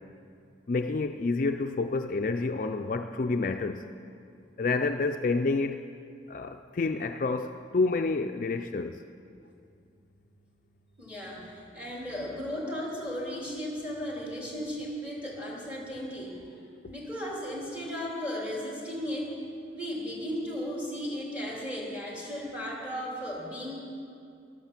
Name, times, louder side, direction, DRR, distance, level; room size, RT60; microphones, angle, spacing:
voice 1, 0.7-3.9 4.6-5.9 6.3-9.0, left 3 dB, 45° left, 6 dB, 0.4 m, -29 dB
voice 2, 11.0-16.6 16.9-19.4 19.7-23.7, equal, 10° right, -3 dB, 3.1 m, -35 dB
12.5 x 11.5 x 7.3 m, 2.5 s
head